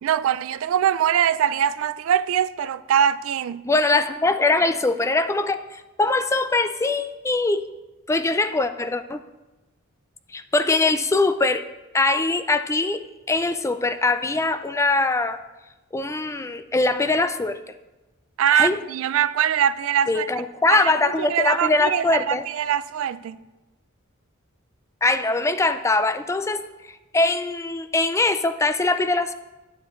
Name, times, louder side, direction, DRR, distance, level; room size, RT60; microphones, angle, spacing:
voice 1, 0.0-3.6 18.4-20.3 20.7-20.9 21.2-23.4, right 9 dB, 70° right, 0.3 m, -22 dB
voice 2, 3.6-7.7 8.1-9.2 10.3-11.6 11.9-13.0 13.3-15.4 15.9-17.6 18.5-18.8 20.1-22.4 25.0-26.6 27.1-29.3, left 3 dB, 15° left, 0.3 m, -22 dB
9.4 x 9.3 x 3.1 m
head